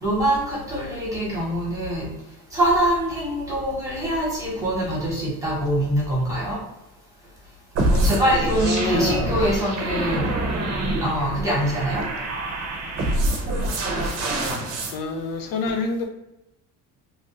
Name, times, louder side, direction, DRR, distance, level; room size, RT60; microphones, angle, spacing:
voice 1, 0.0-2.1 2.5-6.6 7.9-10.3 11.0-12.1 13.7-13.8 14.1-14.3 15.7-15.8, right 1 dB, 10° right, -5 dB, 1.1 m, -24 dB
sound 1, 7.8-14.9, right 1 dB, 45° right, 0.7 m, -25 dB
voice 2, 8.6-9.3 13.4-13.8 14.9-16.0, left 4 dB, 70° left, 4 dB, 0.6 m, -28 dB
3.1 x 2.4 x 2.9 m, 0.91 s
cardioid pair, 160°, 36 cm